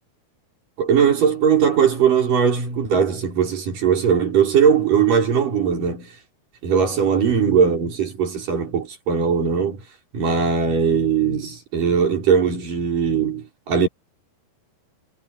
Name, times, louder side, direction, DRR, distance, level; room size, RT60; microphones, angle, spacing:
voice 1, 0.8-6.1 6.6-9.8 10.1-13.9, right 7 dB, 50° right, 6.9 m, -19 dB
omnidirectional pair, 5.1 m